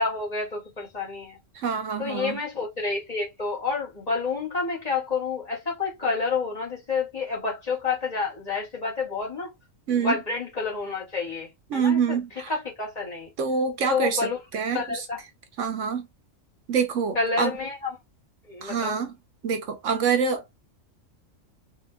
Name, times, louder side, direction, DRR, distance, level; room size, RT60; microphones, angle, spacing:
voice 1, 0.0-1.4 2.0-9.5 10.0-12.2 12.5-13.3 13.9-14.4 14.7-15.2 17.1-17.9 18.5-19.0, left 4 dB, 30° left, 1.6 m, -29 dB
voice 2, 1.5-2.4 9.9-10.2 11.7-12.5 13.4-15.0 15.6-16.1 16.7-17.6 18.6-19.1 19.4-20.6, right 6 dB, 70° right, 1.0 m, -26 dB
3.7 x 2.8 x 2.3 m
omnidirectional pair, 1.4 m